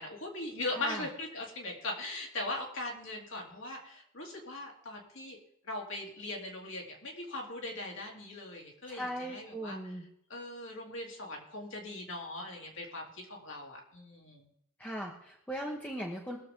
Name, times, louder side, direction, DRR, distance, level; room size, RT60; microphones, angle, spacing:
voice 1, 0.0-5.4 5.6-10.0 10.3-14.5, left 2 dB, 60° left, -1 dB, 3.2 m, -40 dB
voice 2, 0.7-1.0 8.9-10.0 14.8-16.4, equal, 5° left, -1 dB, 1.2 m, -39 dB
22.0 x 7.5 x 3.8 m, 0.77 s
head